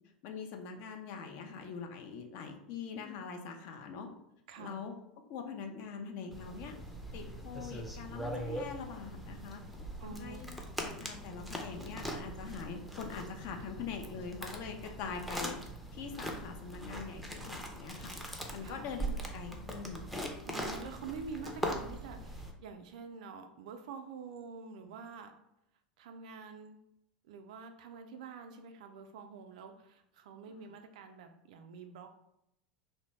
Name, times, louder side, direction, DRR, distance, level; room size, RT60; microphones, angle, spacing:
voice 1, 0.2-4.1 4.6-4.9 5.3-6.7 7.1-9.6 10.0-10.5 10.8-15.6 15.9-18.1 18.5-20.0 30.5-30.8, left 5 dB, 55° left, 4 dB, 0.5 m, -43 dB
sound 1, 6.3-22.5, right 1 dB, ahead, 0.5 m, -41 dB
voice 2, 10.0-10.4 18.6-18.9 20.4-25.3 26.0-26.8 27.2-32.1, right 5 dB, 65° right, 6 dB, 0.4 m, -47 dB
2.6 x 2.1 x 3.0 m, 0.82 s
hypercardioid pair, 85°, 4 cm